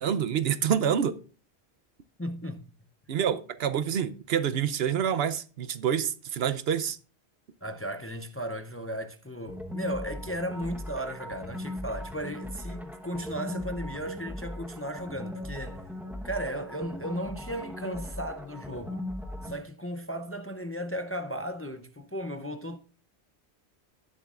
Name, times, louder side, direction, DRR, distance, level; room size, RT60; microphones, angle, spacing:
voice 1, 0.0-1.2 3.1-7.0, right 8 dB, 65° right, 0.9 m, -27 dB
voice 2, 2.2-2.6 7.6-15.9 16.2-19.0 19.4-22.8, equal, 20° left, 0.4 m, -35 dB
sound 1, 9.5-19.6, left 1 dB, ahead, 1.0 m, -39 dB
17.0 x 7.3 x 2.4 m
omnidirectional pair, 1.1 m